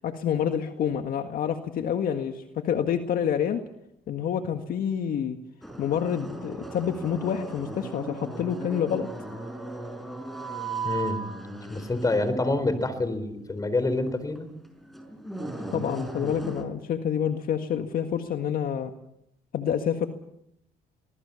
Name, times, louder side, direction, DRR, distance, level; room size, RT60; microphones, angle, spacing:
voice 1, 0.0-3.6 4.1-5.4 5.8-9.1 15.7-18.9 19.5-20.1, left 8 dB, 60° left, 7 dB, 1.8 m, -28 dB
sound 1, 5.6-16.6, right 2 dB, ahead, 5.4 m, -37 dB
voice 2, 10.8-11.2 11.7-14.5, left 2 dB, 20° left, 13 dB, 4.1 m, -27 dB
24.5 x 20.5 x 7.1 m, 0.77 s
cardioid pair, 110°, 17 cm